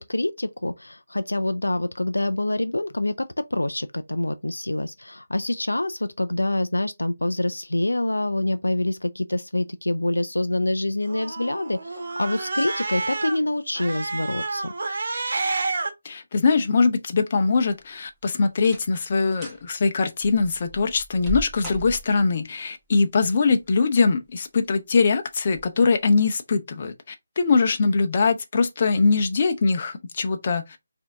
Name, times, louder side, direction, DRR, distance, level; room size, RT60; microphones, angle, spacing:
voice 1, 0.0-3.3 3.5-14.7, left 1 dB, 90° left, 0.4 m, -26 dB
Cat, 11.0-13.4 13.7-15.9, right 3 dB, 60° right, 1.1 m, -29 dB
voice 2, 16.0-30.8, left 4 dB, 45° left, 0.8 m, -22 dB
sound 1, 17.6-18.1 18.6-19.0 19.3-19.6 20.2-22.4 23.6-24.2 24.6-24.7 25.5-25.7 26.1-26.2, equal, 10° right, 1.5 m, -38 dB
4.9 x 2.8 x 3.5 m
figure-of-eight pair, 155°, 0 cm